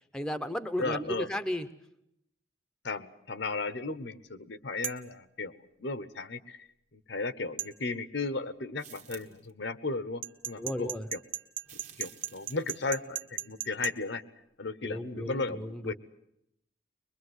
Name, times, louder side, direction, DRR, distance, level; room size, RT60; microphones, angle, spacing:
voice 1, 0.1-1.7 10.6-11.1 14.8-15.9, left 1 dB, 5° left, 10 dB, 0.9 m, -34 dB
voice 2, 0.8-1.3 2.8-5.5 5.8-6.7 6.9-11.2 12.0-14.2 14.6-15.9, left 3 dB, 65° left, 14 dB, 1.0 m, -35 dB
sound 1, 4.8-5.1 7.6-7.7 10.2-13.9, right 12 dB, 80° right, 1.0 m, -36 dB
sound 2, 8.8-9.5 11.6-13.0, right 9 dB, 40° right, 1.5 m, -52 dB
23.0 x 22.0 x 8.0 m, 0.78 s
head